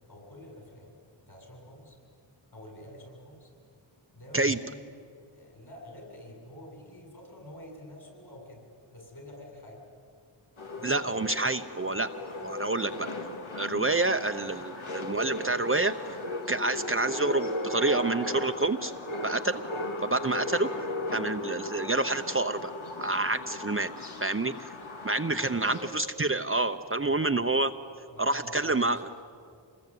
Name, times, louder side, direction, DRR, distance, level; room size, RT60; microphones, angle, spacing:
voice 1, 0.1-0.9 1.3-2.0 2.5-3.5 4.1-4.9 5.3-8.6 8.9-9.8 10.8-10.9 25.3-25.8 26.9-27.5 28.1-29.1, left 1 dB, 50° left, 1 dB, 7.7 m, -48 dB
sound 1, 10.6-25.9, left 2 dB, 90° left, 2.3 m, -37 dB
voice 2, 10.8-12.1 12.4-13.1 13.6-16.2 16.5-18.9 19.2-19.6 20.0-22.7 23.0-23.9 24.2-24.7 25.0-27.7 28.2-29.1, right 2 dB, 25° right, 7 dB, 0.8 m, -28 dB
27.0 x 20.5 x 9.3 m, 2.3 s
wide cardioid pair, 65°, 47 cm